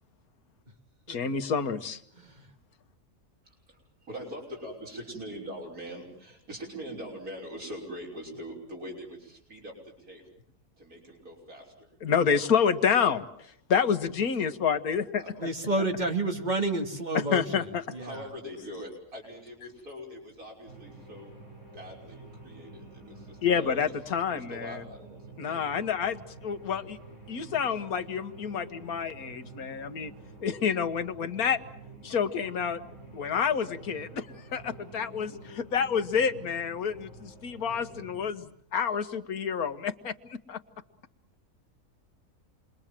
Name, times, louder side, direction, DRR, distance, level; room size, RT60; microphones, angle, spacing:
voice 1, 1.1-2.0 12.0-13.2 13.7-15.5 17.1-17.8 23.4-24.8 25.4-27.0 27.3-30.1 30.4-31.6 32.0-32.8 33.1-40.6, left 7 dB, 90° left, 10 dB, 1.8 m, -28 dB
voice 2, 4.1-9.7 10.0-10.2 10.8-12.3 15.2-15.3 18.0-21.3 21.7-23.9 24.3-25.6, equal, 85° right, 0 dB, 6.5 m, -42 dB
voice 3, 15.4-17.7 17.9-18.3, right 2 dB, 30° right, 4 dB, 2.6 m, -30 dB
sound 1, 20.6-38.3, right 2 dB, 55° right, 7.3 m, -49 dB
29.0 x 22.5 x 7.5 m, 0.65 s
omnidirectional pair, 1.5 m